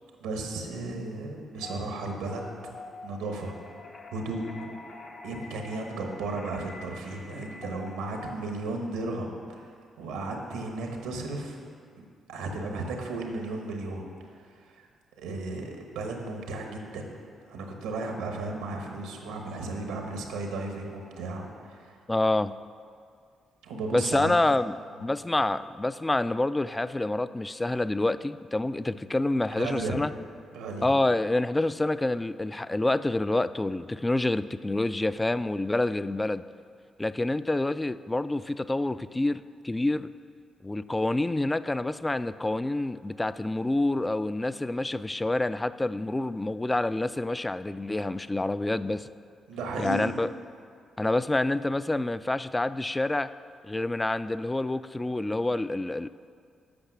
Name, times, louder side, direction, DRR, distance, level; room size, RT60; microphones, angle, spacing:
voice 1, 0.2-2.4 3.0-3.5 4.1-4.4 5.2-9.7 10.0-11.6 11.9-12.0 12.3-14.1 14.4-14.9 15.2-17.1 17.5-22.0 23.6-24.4 25.0-25.1 29.6-30.0 30.5-30.9 49.5-50.1, right 2 dB, 90° right, 2 dB, 1.2 m, -34 dB
sound 1, 1.6-8.4, left 3 dB, 60° left, 0.8 m, -45 dB
voice 2, 22.1-22.6 23.9-24.8 25.0-30.1 30.8-36.4 37.0-40.1 40.6-49.1 49.8-50.3 51.0-53.3 53.6-56.1, left 2 dB, 20° left, 14 dB, 0.3 m, -27 dB
8.6 x 5.7 x 6.1 m, 2.2 s
supercardioid pair, 55°, 0 cm